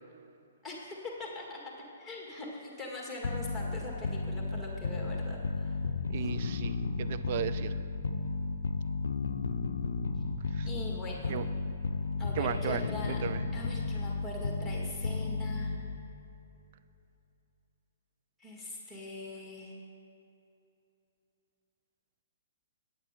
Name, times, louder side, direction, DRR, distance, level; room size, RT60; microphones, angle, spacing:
voice 1, 0.6-1.6 2.0-5.8 6.2-6.3 10.6-11.4 12.2-13.2 13.5-15.7 18.4-19.8, left 2 dB, ahead, -3 dB, 2.0 m, -42 dB
sound 1, 3.2-16.2, left 3 dB, 65° left, 0.5 m, -34 dB
voice 2, 6.1-7.8 10.5-10.7 11.3-11.4 12.3-12.8 13.1-13.4, right 10 dB, 40° right, 12 dB, 0.4 m, -35 dB
9.7 x 8.6 x 5.0 m, 2.9 s
figure-of-eight pair, 120°, 0 cm